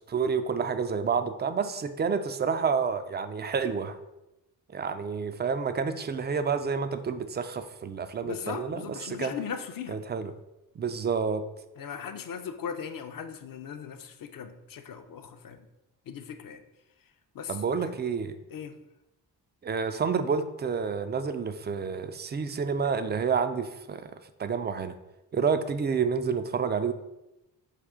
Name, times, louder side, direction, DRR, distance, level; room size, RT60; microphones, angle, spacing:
voice 1, 0.0-4.0 4.7-9.3 9.9-10.3 10.8-11.4 17.5-18.4 19.6-24.1 24.4-24.9 25.3-26.9, right 5 dB, 25° right, 10 dB, 0.3 m, -29 dB
voice 2, 8.2-10.0 11.8-15.7 16.1-16.6 17.3-17.9 18.5-18.8, left 7 dB, 45° left, 8 dB, 0.6 m, -38 dB
5.0 x 2.4 x 3.5 m, 0.93 s
supercardioid pair, 45°, 46 cm